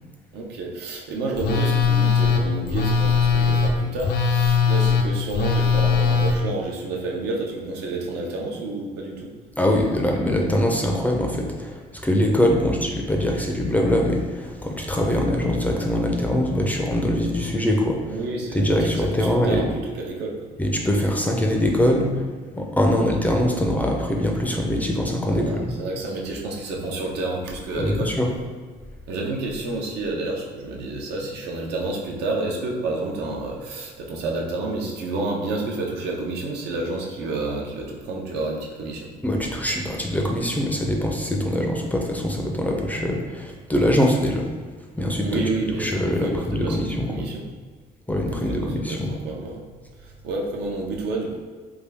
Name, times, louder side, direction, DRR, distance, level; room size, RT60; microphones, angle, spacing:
voice 1, 0.3-9.3 18.1-20.5 23.0-23.1 25.2-28.1 29.1-39.1 45.2-45.9 46.2-47.4 48.3-49.6 50.0-51.4, right 2 dB, 75° right, -1 dB, 0.7 m, -29 dB
Telephone, 1.4-6.3, left 5 dB, 65° left, 0.5 m, -20 dB
voice 2, 9.6-18.2 18.5-19.6 20.6-22.2 22.6-25.7 27.7-28.3 39.2-44.5 45.0-45.4 45.8-47.3 48.1-49.1, left 1 dB, 10° left, 0 dB, 0.4 m, -23 dB
3.5 x 2.2 x 3.4 m, 1.5 s
cardioid pair, 110°, 17 cm